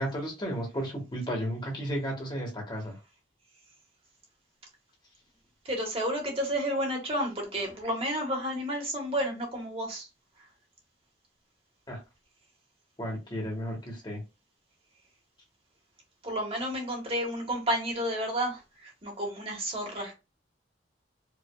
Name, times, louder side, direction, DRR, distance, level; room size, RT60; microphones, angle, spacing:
voice 1, 0.0-3.0 11.9-12.0 13.0-14.2, equal, 25° left, 1.4 m, -33 dB
voice 2, 5.7-10.0 16.2-18.5 19.0-20.1, equal, 30° right, 1.4 m, -31 dB
4.8 x 2.7 x 2.3 m
head